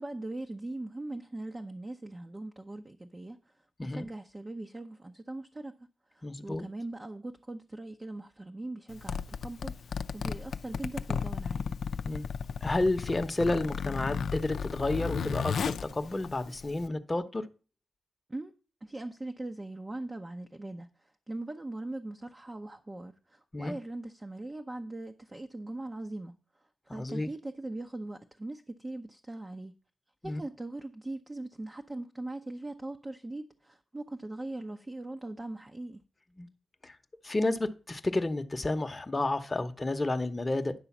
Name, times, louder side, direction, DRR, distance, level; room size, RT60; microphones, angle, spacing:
voice 1, 0.0-3.5 3.8-5.8 6.1-11.7 18.3-18.5 18.8-26.4 26.9-29.7 30.2-36.0, right 2 dB, 25° right, 0.7 m, -40 dB
voice 2, 6.2-6.7 12.0-12.3 12.6-17.5 23.5-23.7 26.9-27.3 30.2-30.4 36.4-36.5 36.8-37.0 37.2-40.7, left 2 dB, 25° left, 0.9 m, -31 dB
Zipper (clothing), 8.9-16.9, left 6 dB, 75° left, 0.5 m, -34 dB
10.5 x 3.9 x 7.2 m
cardioid pair, 65°, 0 cm